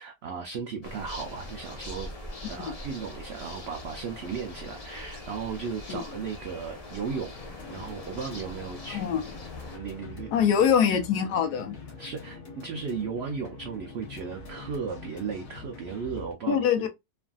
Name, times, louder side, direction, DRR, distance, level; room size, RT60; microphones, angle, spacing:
voice 1, 0.0-2.1 2.5-9.0 9.7-10.4 12.0-16.9, right 6 dB, 80° right, 0.5 m, -36 dB
sound 1, 0.8-9.8, left 2 dB, 40° left, 0.5 m, -42 dB
sound 2, 7.3-16.3, left 4 dB, 65° left, 1.2 m, -44 dB
voice 2, 10.3-11.7 16.5-16.9, left 7 dB, 85° left, 1.2 m, -23 dB
3.2 x 2.5 x 2.2 m
omnidirectional pair, 1.7 m